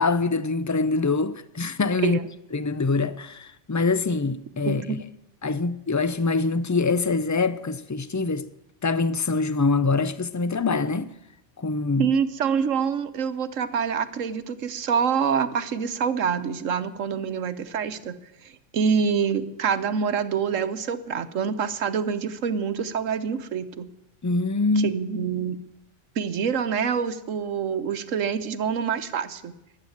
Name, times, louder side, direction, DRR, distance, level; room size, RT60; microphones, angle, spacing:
voice 1, 0.0-2.2 2.5-5.0 5.4-8.5 8.8-11.1 11.6-12.1 24.2-24.9, left 3 dB, 25° left, 0.4 m, -24 dB
voice 2, 4.7-5.0 12.0-23.9 24.8-25.6 26.2-29.5, right 6 dB, 80° right, 1.4 m, -26 dB
22.0 x 8.9 x 7.3 m
omnidirectional pair, 1.3 m